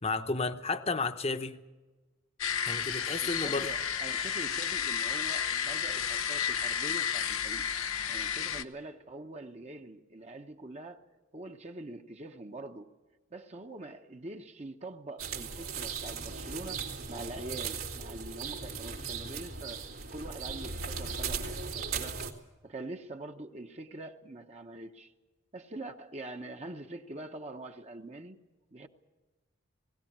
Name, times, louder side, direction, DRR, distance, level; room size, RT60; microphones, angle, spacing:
voice 1, 0.0-1.6 2.6-3.7, left 3 dB, 30° left, 0.9 m, -32 dB
sound 1, 2.4-8.6, left 8 dB, 90° left, 1.0 m, -32 dB
voice 2, 3.2-7.7 8.1-11.1 11.3-12.9 13.3-22.2 22.6-25.1 25.5-28.4 28.7-28.9, right 2 dB, 30° right, 1.0 m, -44 dB
sound 2, 15.2-22.3, right 5 dB, 80° right, 2.7 m, -38 dB
20.0 x 17.5 x 8.7 m
head